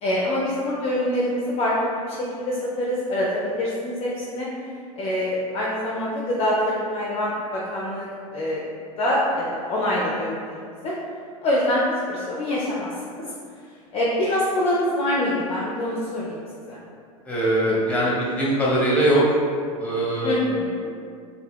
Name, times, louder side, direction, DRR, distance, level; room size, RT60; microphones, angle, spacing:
voice 1, 0.0-4.5 5.0-8.1 8.3-8.6 9.0-10.6 10.8-10.9 11.4-13.2 13.9-16.4 16.7-16.8 20.2-20.9, left 1 dB, 30° left, -5 dB, 0.5 m, -25 dB
voice 2, 17.2-19.2 19.8-20.4, right 1 dB, 5° left, -6 dB, 0.9 m, -21 dB
2.3 x 2.2 x 3.4 m, 2.2 s
hypercardioid pair, 90°, 19 cm